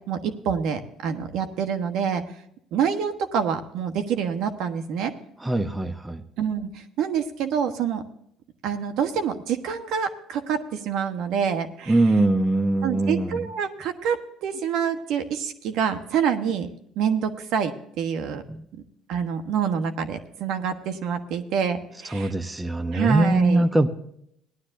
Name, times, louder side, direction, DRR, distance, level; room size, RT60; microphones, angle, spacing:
voice 1, 0.1-2.2 2.7-5.1 6.4-8.0 8.6-12.0 12.8-16.7 17.0-18.4 19.1-22.3 22.9-23.6, right 7 dB, 75° right, 8 dB, 1.2 m, -26 dB
voice 2, 5.4-6.2 11.9-13.4 18.5-18.6 22.1-23.9, right 2 dB, 15° right, 11 dB, 0.9 m, -22 dB
17.5 x 11.5 x 2.6 m, 0.72 s
supercardioid pair, 80°, 0 cm